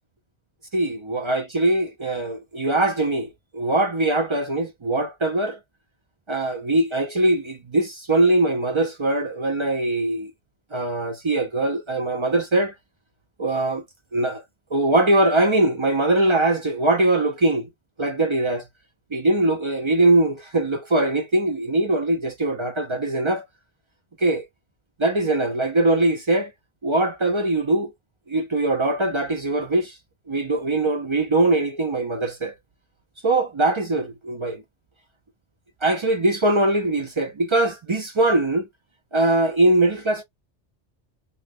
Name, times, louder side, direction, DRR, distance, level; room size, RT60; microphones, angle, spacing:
voice 1, 0.7-5.6 6.3-10.3 10.7-12.7 13.4-13.8 14.1-14.4 14.7-17.7 18.0-18.6 19.1-23.4 24.2-24.5 25.0-26.5 26.8-27.9 28.3-30.0 30.3-32.5 33.2-34.6 35.8-38.7 39.1-40.2, right 2 dB, 45° right, 0.4 m, -21 dB
2.7 x 2.1 x 3.4 m
omnidirectional pair, 1.1 m